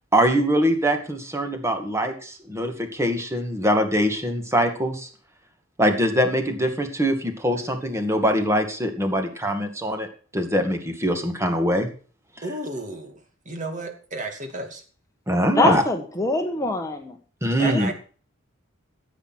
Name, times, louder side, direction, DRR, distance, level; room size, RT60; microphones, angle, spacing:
voice 1, 0.1-5.1 5.8-10.1 10.3-11.9 15.3-15.8 17.4-17.9, equal, 15° right, 2.2 m, -23 dB
voice 2, 12.4-13.2 13.5-14.8 17.6-17.9, right 2 dB, 40° right, 2.6 m, -32 dB
voice 3, 15.5-17.2 17.6-17.9, left 2 dB, 15° left, 1.3 m, -24 dB
15.0 x 8.6 x 6.2 m
head